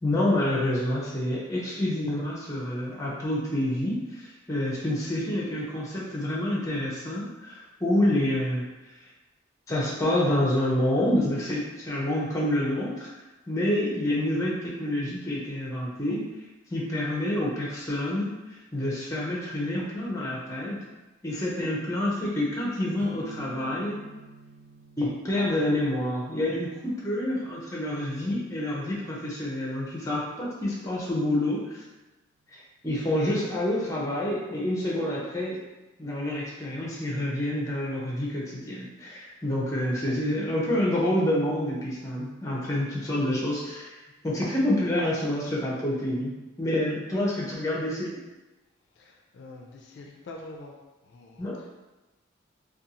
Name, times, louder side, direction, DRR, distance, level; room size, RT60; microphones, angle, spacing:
voice 1, 0.0-8.7 9.7-13.1 13.5-16.2 16.7-20.8 21.2-24.0 25.0-31.8 32.5-35.7 36.0-44.0 44.2-48.1 51.4-51.6, left 1 dB, 15° left, -4 dB, 0.5 m, -28 dB
sound 1, 23.0-30.8, right 2 dB, 45° right, 0.5 m, -50 dB
voice 2, 48.9-50.8 51.0-51.7, left 2 dB, 60° left, 0 dB, 0.3 m, -45 dB
2.5 x 2.3 x 2.8 m, 1.1 s
head